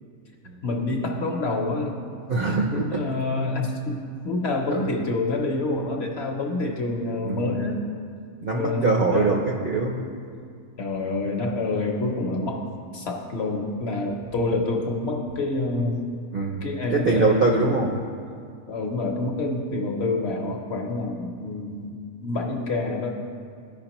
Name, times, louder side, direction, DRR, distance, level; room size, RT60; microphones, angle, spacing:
voice 1, 0.6-2.0 2.7-7.9 8.5-9.4 10.8-16.1 16.6-17.7 18.7-21.9 22.2-23.3, left 2 dB, 55° left, 1 dB, 0.8 m, -27 dB
voice 2, 2.3-3.0 4.7-4.9 7.2-7.6 8.4-10.0 16.3-16.6 16.9-17.9, right 4 dB, 60° right, -1 dB, 0.6 m, -23 dB
14.0 x 5.1 x 2.9 m, 2.3 s
omnidirectional pair, 1.5 m